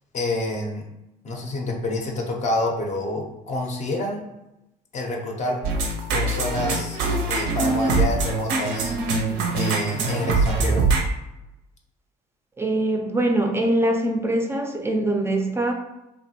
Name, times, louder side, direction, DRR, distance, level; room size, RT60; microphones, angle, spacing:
voice 1, 0.1-0.8 1.2-4.2 4.9-5.6 6.1-7.0 7.3-9.0 9.5-10.9, left 1 dB, 45° left, 1 dB, 0.5 m, -28 dB
sound 1, 5.6-11.0, right 3 dB, 85° right, 0.5 m, -23 dB
voice 2, 12.6-15.7, right 1 dB, 15° right, 3 dB, 0.3 m, -23 dB
2.9 x 2.1 x 2.7 m, 0.92 s
cardioid pair, 110°, 17 cm